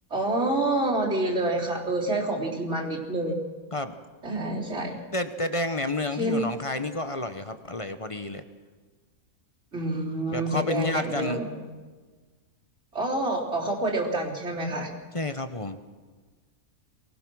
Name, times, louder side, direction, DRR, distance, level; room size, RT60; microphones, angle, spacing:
voice 1, 0.1-3.4 4.2-5.0 6.1-6.4 9.7-11.5 12.9-14.9, right 2 dB, 50° right, -4 dB, 4.0 m, -27 dB
voice 2, 5.1-8.4 10.3-11.4 15.1-15.8, left 2 dB, 25° left, 9 dB, 0.9 m, -30 dB
23.5 x 20.0 x 6.2 m, 1.4 s
omnidirectional pair, 1.5 m